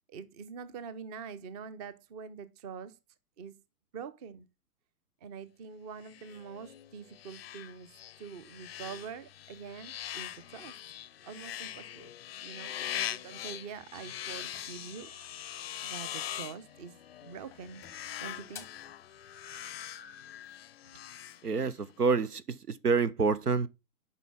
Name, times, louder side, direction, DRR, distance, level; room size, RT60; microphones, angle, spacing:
voice 1, 0.1-3.0 3.4-3.6 3.9-4.5 5.2-10.8 11.2-12.1 12.4-17.8 18.2-18.7, right 6 dB, 25° right, 0.7 m, -45 dB
sound 1, 6.0-22.0, left 11 dB, 45° left, 0.5 m, -42 dB
sound 2, 13.9-18.4, right 2 dB, 65° right, 4.0 m, -59 dB
sound 3, 14.3-15.5 16.8-17.2 17.5-19.0, left 8 dB, 5° left, 0.7 m, -53 dB
voice 2, 21.4-23.7, right 5 dB, 90° right, 0.8 m, -28 dB
9.2 x 5.6 x 3.5 m
figure-of-eight pair, 120°, 45 cm